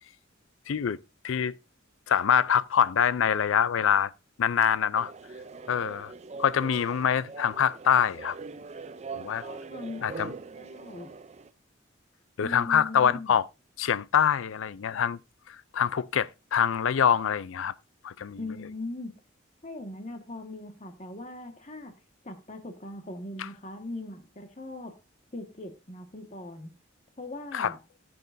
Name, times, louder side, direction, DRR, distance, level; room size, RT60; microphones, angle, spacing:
voice 1, 0.7-1.0 1.2-1.5 2.1-4.1 4.4-5.1 5.7-6.1 6.4-8.4 9.1-9.4 10.0-10.3 12.4-13.4 13.8-15.2 15.5-17.7 18.0-18.4 23.4-23.5 27.5-27.7, left 8 dB, 80° left, 0.4 m, -25 dB
sound 1, 4.9-11.5, right 4 dB, 35° right, 0.5 m, -42 dB
voice 2, 9.4-10.3 10.6-11.1 12.4-13.3 18.4-19.1 19.6-21.9 22.2-25.0 25.3-26.8 27.2-27.8, left 2 dB, 35° left, 1.5 m, -40 dB
14.5 x 7.8 x 2.6 m
head